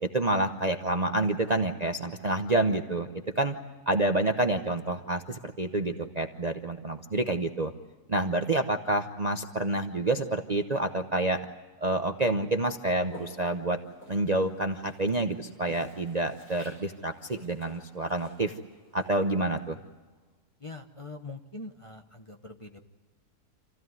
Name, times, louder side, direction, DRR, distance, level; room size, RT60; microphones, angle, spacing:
voice 1, 0.0-3.5 3.9-7.7 8.1-11.4 11.8-13.8 14.1-18.5 18.9-19.8, right 2 dB, 35° right, 6 dB, 0.8 m, -28 dB
Walk footsteps, 13.0-20.2, left 1 dB, 55° left, 7.4 m, -54 dB
voice 2, 20.6-22.8, left 2 dB, 25° left, 3 dB, 1.0 m, -43 dB
28.0 x 15.5 x 9.4 m, 1.3 s
omnidirectional pair, 1.7 m